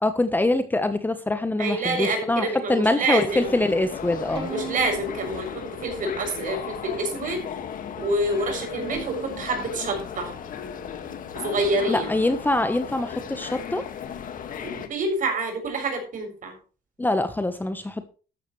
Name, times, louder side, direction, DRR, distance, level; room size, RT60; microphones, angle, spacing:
voice 1, 0.0-4.5 11.9-13.8 17.0-18.1, left 2 dB, 10° left, 9 dB, 1.2 m, -24 dB
voice 2, 1.6-3.5 4.5-7.4 8.0-10.3 11.3-12.2 14.6-16.6, right 2 dB, 50° right, 5 dB, 7.1 m, -27 dB
sound 1, 3.3-14.9, left 8 dB, 55° left, 2.0 m, -36 dB
Bowed string instrument, 4.4-6.7 7.2-8.0 8.9-11.5, right 6 dB, 30° right, 7.6 m, -42 dB
13.5 x 12.0 x 3.3 m, 0.36 s
cardioid pair, 110°, 17 cm